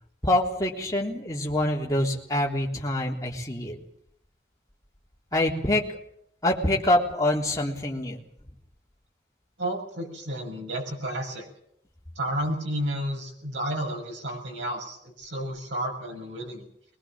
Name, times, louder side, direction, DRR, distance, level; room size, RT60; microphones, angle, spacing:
voice 1, 0.2-3.8 5.3-5.8 6.4-8.2, left 1 dB, 20° left, -2 dB, 3.4 m, -25 dB
voice 2, 9.6-11.5 12.1-16.6, right 1 dB, 85° right, 1 dB, 6.9 m, -31 dB
22.0 x 20.5 x 7.5 m, 0.73 s
head